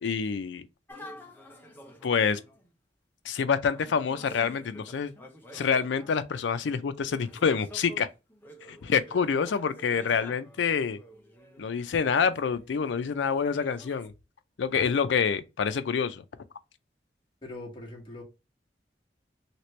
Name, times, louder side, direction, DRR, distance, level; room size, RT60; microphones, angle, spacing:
voice 1, 0.0-0.7 2.0-2.4 3.2-5.1 5.5-8.1 8.7-11.0 11.6-14.1 14.6-16.2, left 6 dB, 85° left, 0.4 m, -27 dB
sound 1, 0.9-2.7 3.6-6.2 7.0-14.1, equal, 10° left, 0.6 m, -49 dB
voice 2, 17.4-18.2, left 2 dB, 30° left, 1.1 m, -41 dB
2.9 x 2.9 x 3.1 m
head